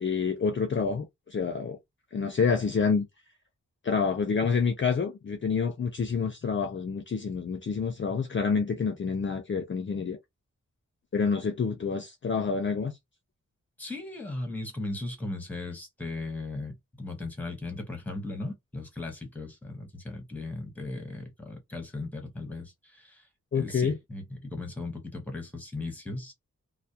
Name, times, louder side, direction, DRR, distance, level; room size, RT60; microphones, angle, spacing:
voice 1, 0.0-1.8 2.1-3.1 3.8-10.2 11.1-12.9 23.5-23.9, left 5 dB, 40° left, 0.4 m, -28 dB
voice 2, 13.8-23.3 23.5-26.3, left 2 dB, 5° left, 0.8 m, -37 dB
2.3 x 2.0 x 2.6 m
wide cardioid pair, 120°, 31 cm